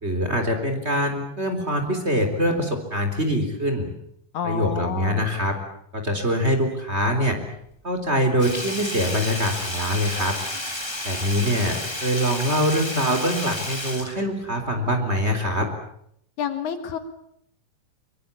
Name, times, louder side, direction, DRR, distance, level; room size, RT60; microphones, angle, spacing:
voice 1, 0.0-3.9 4.4-5.6 5.9-7.4 7.8-10.4 11.0-15.7, equal, 20° right, 5 dB, 3.7 m, -24 dB
voice 2, 4.3-5.3 16.4-17.0, left 8 dB, 65° left, 9 dB, 2.8 m, -29 dB
Sink (filling or washing), 8.4-14.9 15.2-15.3, left 1 dB, 10° left, 2.7 m, -32 dB
24.0 x 23.0 x 8.4 m, 0.72 s
omnidirectional pair, 3.8 m